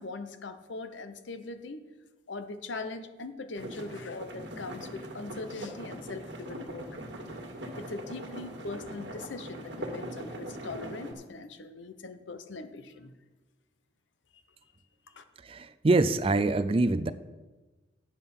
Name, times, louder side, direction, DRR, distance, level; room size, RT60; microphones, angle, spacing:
voice 1, 0.0-1.8 2.3-6.9 7.8-13.1 15.2-15.3, left 3 dB, 85° left, 9 dB, 0.9 m, -41 dB
sound 1, 3.6-11.1, right 1 dB, 75° right, 1.8 m, -41 dB
voice 2, 15.4-17.1, right 2 dB, 30° right, 12 dB, 0.4 m, -25 dB
10.0 x 7.3 x 5.5 m, 1.2 s
head